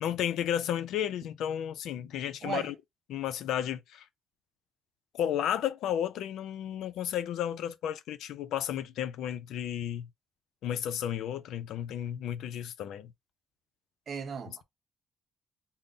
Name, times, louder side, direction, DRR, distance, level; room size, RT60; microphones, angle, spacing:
voice 1, 0.0-2.7 3.1-4.1 5.1-10.1 10.6-13.1, left 10 dB, 85° left, 0.4 m, -33 dB
voice 2, 14.1-14.6, right 6 dB, 55° right, 0.7 m, -36 dB
3.8 x 2.0 x 3.8 m
cardioid pair, 90°, 0 cm